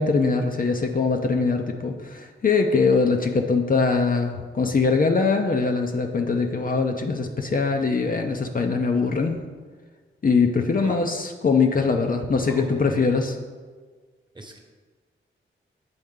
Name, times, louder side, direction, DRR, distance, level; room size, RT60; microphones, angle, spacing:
voice 1, 0.0-9.4 10.2-13.4, left 4 dB, 40° left, 3 dB, 0.6 m, -22 dB
voice 2, 12.5-12.8 14.3-14.6, right 2 dB, 20° right, 2 dB, 1.1 m, -39 dB
7.8 x 4.1 x 3.7 m, 1.5 s
cardioid pair, 60°, 21 cm